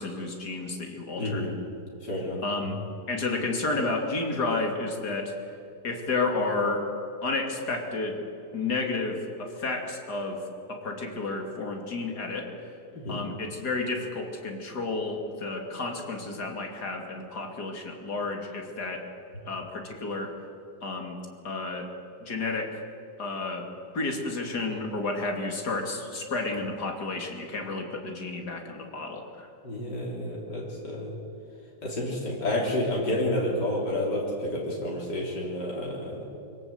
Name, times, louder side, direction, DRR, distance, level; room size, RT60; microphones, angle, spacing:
voice 1, 0.0-1.5 2.4-2.8 3.1-5.3 5.8-6.8 7.2-8.2 8.5-12.5 13.1-19.0 19.5-20.3 20.8-21.2 21.4-21.9 22.2-22.8 23.2-23.7 23.9-29.5, left 3 dB, 70° left, 2 dB, 3.2 m, -31 dB
voice 2, 1.2-1.5 2.0-2.4 12.9-13.2 29.6-31.2 31.8-36.4, left 1 dB, 90° left, -3 dB, 4.1 m, -30 dB
25.0 x 17.0 x 8.0 m, 2.7 s
omnidirectional pair, 1.8 m